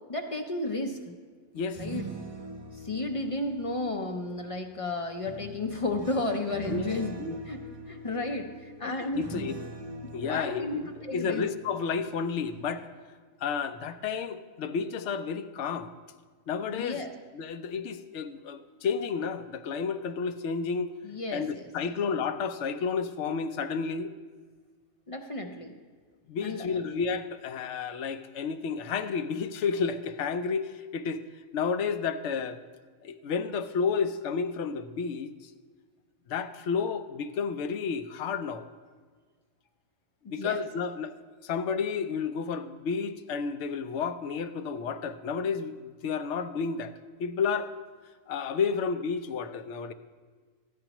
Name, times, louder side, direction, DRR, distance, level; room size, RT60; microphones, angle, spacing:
voice 1, 0.1-1.1 1.8-2.0 2.7-7.2 7.5-9.2 10.0-11.4 16.7-17.1 21.0-21.7 25.1-25.7 26.4-26.8 40.2-40.6, left 2 dB, 40° left, 4 dB, 0.5 m, -33 dB
sound 1, 1.6-4.4 5.2-12.2 12.5-12.8, right 1 dB, 30° right, 1.0 m, -43 dB
voice 2, 8.8-9.5 10.1-10.8 11.1-12.9 13.4-15.9 16.5-17.0 17.3-20.9 21.3-24.1 26.3-31.2 31.5-32.6 33.0-35.5 36.3-38.7 40.3-41.1 41.4-46.9 47.2-47.7 48.3-49.9, left 5 dB, 65° left, 10 dB, 0.8 m, -31 dB
14.0 x 9.5 x 3.0 m, 1.5 s
omnidirectional pair, 1.4 m